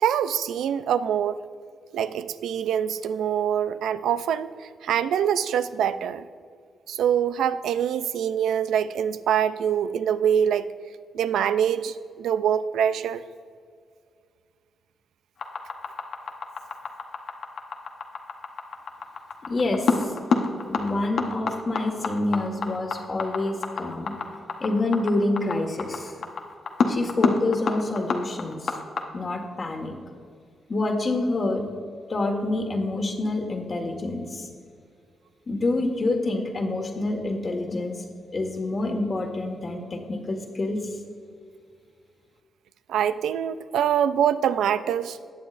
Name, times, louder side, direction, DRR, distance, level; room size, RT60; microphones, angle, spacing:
voice 1, 0.0-1.4 1.9-6.2 6.9-10.7 11.1-13.2 42.9-45.2, right 9 dB, 90° right, 13 dB, 0.4 m, -24 dB
sound 1, 15.4-29.0, left 5 dB, 75° left, 0.9 m, -27 dB
voice 2, 19.5-20.1 20.7-24.1 24.6-26.1 26.9-28.7 29.1-29.9 30.7-31.7 32.1-34.4 35.5-38.0 38.3-40.9, left 2 dB, 45° left, 4 dB, 1.6 m, -27 dB
19.5 x 7.3 x 2.5 m, 2.1 s
cardioid pair, 70°, 0 cm